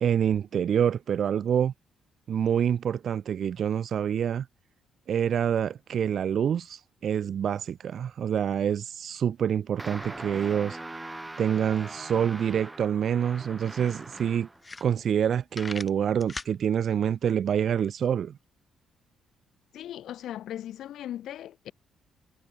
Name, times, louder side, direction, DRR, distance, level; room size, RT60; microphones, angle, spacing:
voice 1, 0.0-1.7 2.3-4.5 5.1-11.0 11.4-14.5 14.8-18.3, right 8 dB, 60° right, 0.4 m, -26 dB
sound 1, 9.8-14.6, right 2 dB, 15° right, 1.5 m, -41 dB
sound 2, 13.6-13.7 14.2-14.3 14.6-15.2 15.5-16.6, left 3 dB, 25° left, 0.6 m, -39 dB
voice 2, 19.7-21.7, left 12 dB, 75° left, 0.5 m, -38 dB
cardioid pair, 90°, 0 cm